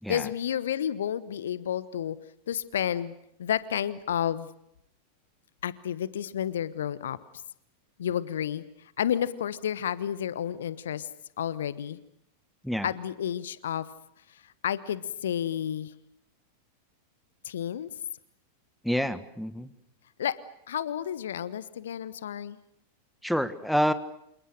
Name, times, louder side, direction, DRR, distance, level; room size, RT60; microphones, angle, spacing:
voice 1, 0.1-2.2 2.5-3.1 3.4-4.5 5.6-7.2 8.0-11.1 11.4-12.0 12.8-13.9 14.3-15.9 17.4-17.9 20.2-20.4 20.7-22.6, left 9 dB, 60° left, 17 dB, 1.0 m, -31 dB
voice 2, 18.8-19.7 23.2-23.9, equal, ahead, 12 dB, 1.6 m, -27 dB
28.5 x 28.0 x 6.6 m, 0.77 s
figure-of-eight pair, 90°, 0 cm